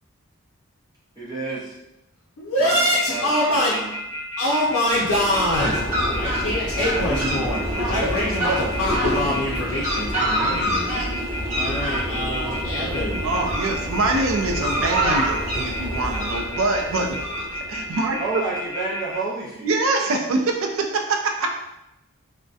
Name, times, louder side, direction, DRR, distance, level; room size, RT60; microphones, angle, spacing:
voice 1, 1.2-1.8 2.6-3.9 7.1-7.5 11.5-11.8 18.2-19.8, right 3 dB, 20° right, -8 dB, 0.5 m, -31 dB
voice 2, 2.4-3.8 4.4-5.8 6.2-13.2, left 1 dB, 85° left, -7 dB, 0.5 m, -24 dB
sound 1, 3.0-19.2, left 1 dB, 25° left, 1.1 m, -32 dB
Fowl, 4.9-17.9, equal, 35° right, 0.8 m, -26 dB
voice 3, 13.2-18.2 19.6-21.6, right 2 dB, 75° right, 3 dB, 0.4 m, -24 dB
2.6 x 2.1 x 2.3 m, 0.88 s
head